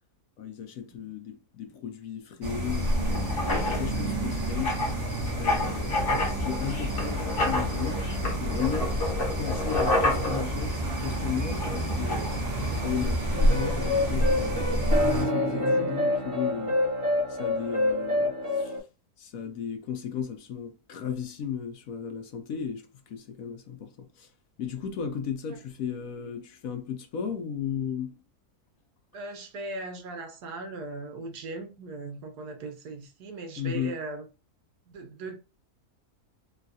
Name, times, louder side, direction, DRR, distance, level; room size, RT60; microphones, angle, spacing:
voice 1, 0.4-4.8 5.4-8.1 8.4-9.0 9.4-12.3 12.8-16.8 17.3-18.8 19.2-24.3 24.6-28.1 33.6-33.9, left 8 dB, 70° left, 0.9 m, -35 dB
sound 1, 2.4-15.3, equal, 50° right, 1.4 m, -29 dB
Writing, 2.7-13.1, left 2 dB, 40° left, 1.0 m, -31 dB
sound 2, 13.3-18.8, left 1 dB, 20° right, 1.3 m, -27 dB
voice 2, 29.1-34.3 34.9-35.4, right 2 dB, 85° right, 1.3 m, -38 dB
3.9 x 2.3 x 2.6 m
omnidirectional pair, 1.7 m